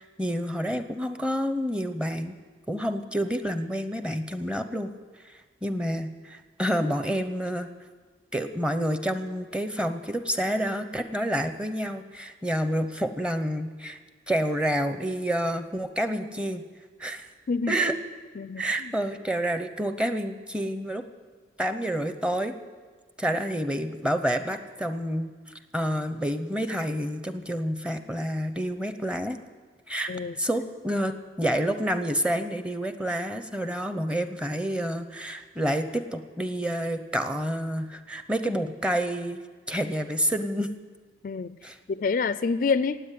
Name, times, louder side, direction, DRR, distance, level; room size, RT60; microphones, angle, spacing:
voice 1, 0.0-2.4 2.7-4.9 5.6-7.7 8.3-14.0 14.3-16.6 17.0-17.2 17.7-18.0 18.6-21.0 21.6-22.6 23.2-25.3 25.7-29.4 29.9-30.1 30.4-39.4 39.7-40.7 41.6-41.8, equal, 5° right, 8 dB, 0.7 m, -28 dB
voice 2, 18.4-18.9 30.1-30.3 41.2-41.6 41.9-43.0, left 4 dB, 45° left, 15 dB, 0.4 m, -27 dB
18.0 x 8.2 x 9.2 m, 1.5 s
head